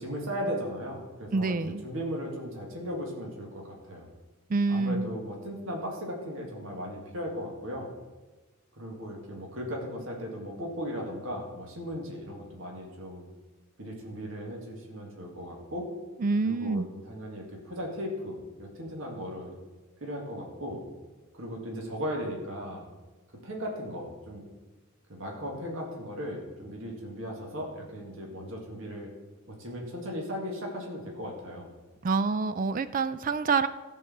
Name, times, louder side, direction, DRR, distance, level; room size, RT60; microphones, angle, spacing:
voice 1, 0.0-4.1 4.7-7.9 8.8-13.3 13.8-15.9 16.4-19.5 20.0-20.8 21.3-22.9 23.4-24.4 25.1-29.1 29.5-31.7, equal, 60° right, -1 dB, 2.0 m, -37 dB
voice 2, 1.3-1.8 4.5-5.1 16.2-16.9 32.0-33.7, right 4 dB, 40° right, 13 dB, 0.4 m, -27 dB
14.0 x 4.7 x 7.1 m, 1.2 s
head